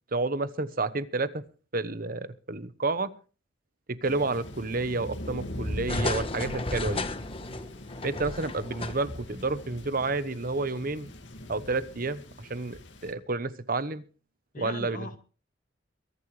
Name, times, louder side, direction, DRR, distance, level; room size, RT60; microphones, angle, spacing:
voice 1, 0.1-1.4 1.7-3.1 3.9-7.1 8.0-11.1 11.5-14.0 14.6-15.2, right 3 dB, 50° right, 1.1 m, -30 dB
Thunder, 4.0-13.1, left 1 dB, 90° left, 2.2 m, -42 dB
sound 1, 5.9-9.3 9.6-9.7, left 2 dB, 30° left, 1.2 m, -33 dB
voice 2, 7.9-8.2 14.5-15.2, left 3 dB, 50° left, 1.9 m, -41 dB
23.0 x 11.0 x 3.3 m
head